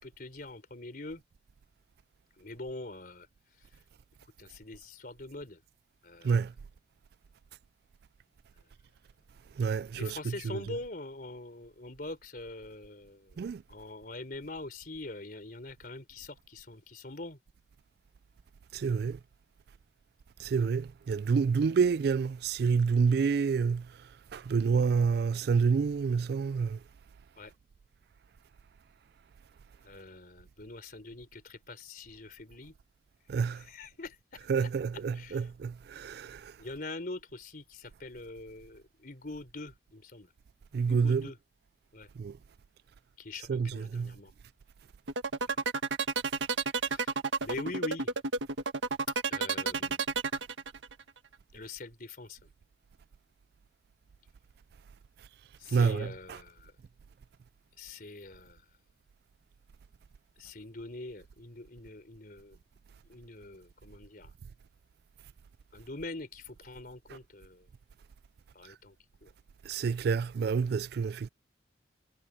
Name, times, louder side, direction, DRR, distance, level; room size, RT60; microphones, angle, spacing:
voice 1, 0.0-1.2 2.4-3.3 3.7-3.8 4.4-5.6 6.0-6.4 9.9-13.4 13.7-17.4 27.4-27.5 29.8-32.7 33.5-34.7 35.1-35.5 36.6-40.3 40.9-41.4 41.9-42.1 43.2-44.3 45.4-45.6 46.8-47.1 47.4-48.1 49.3-50.0 51.5-52.4 55.6-56.7 57.8-58.6 60.4-62.6 63.1-64.3 65.7-67.7 68.5-69.0 69.2-69.3, left 2 dB, 50° left, 3.9 m, -44 dB
voice 2, 9.6-10.7 13.4-13.6 18.7-19.2 20.4-23.9 24.3-26.8 33.3-33.6 34.5-36.5 40.7-41.3 42.2-42.4 43.5-44.1 55.7-56.4 67.1-67.2 69.7-71.3, right 5 dB, 55° right, 0.3 m, -28 dB
sound 1, 45.1-51.0, right 4 dB, 80° right, 1.7 m, -31 dB
head